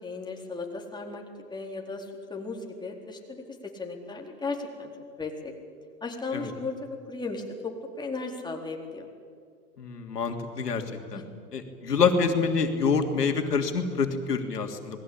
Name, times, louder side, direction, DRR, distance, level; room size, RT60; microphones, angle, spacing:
voice 1, 0.0-1.2 1.5-4.9 5.2-5.5 6.0-6.7 7.1-9.1 11.1-11.2, left 3 dB, 10° left, 1 dB, 4.0 m, -36 dB
voice 2, 9.8-10.8 11.1-11.2 11.5-15.0, left 5 dB, 80° left, 5 dB, 3.1 m, -26 dB
27.5 x 20.5 x 8.8 m, 2.1 s
hypercardioid pair, 110°, 47 cm